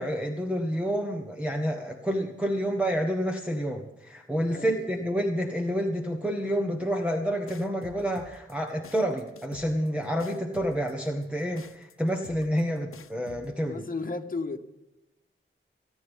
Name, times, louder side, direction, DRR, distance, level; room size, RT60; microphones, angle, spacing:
voice 1, 0.0-13.8, equal, 5° right, 1.3 m, -29 dB
voice 2, 4.5-4.9 13.6-14.6, left 3 dB, 40° left, 1.5 m, -34 dB
sound 1, 7.5-13.5, left 6 dB, 90° left, 0.9 m, -48 dB
29.5 x 9.9 x 3.7 m
wide cardioid pair, 95°, 21 cm